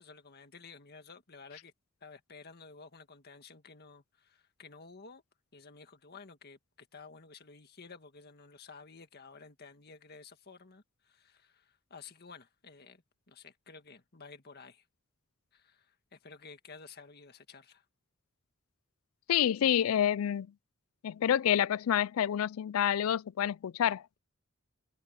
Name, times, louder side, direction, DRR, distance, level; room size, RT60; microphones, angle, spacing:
voice 1, 0.0-1.7 2.0-5.2 5.5-14.9 15.5-17.9, left 4 dB, 50° left, 1.8 m, -53 dB
voice 2, 19.3-20.5 21.0-24.0, left 10 dB, 85° left, 0.4 m, -28 dB
head